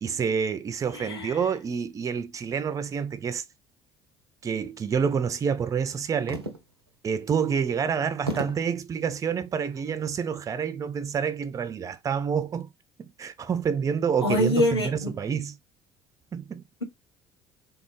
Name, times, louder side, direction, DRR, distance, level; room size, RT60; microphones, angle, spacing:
voice 1, 0.0-3.4 4.4-6.4 7.0-12.7 13.0-15.6 16.3-16.6, right 6 dB, 25° right, 0.4 m, -28 dB
voice 2, 0.9-1.3 14.2-15.1, left 1 dB, 90° left, 0.6 m, -25 dB
sound 1, 6.3-6.9 7.4-7.5 8.3-8.8 9.6-10.0, right 2 dB, 90° right, 0.4 m, -34 dB
3.4 x 2.0 x 3.0 m
figure-of-eight pair, 55°, 13 cm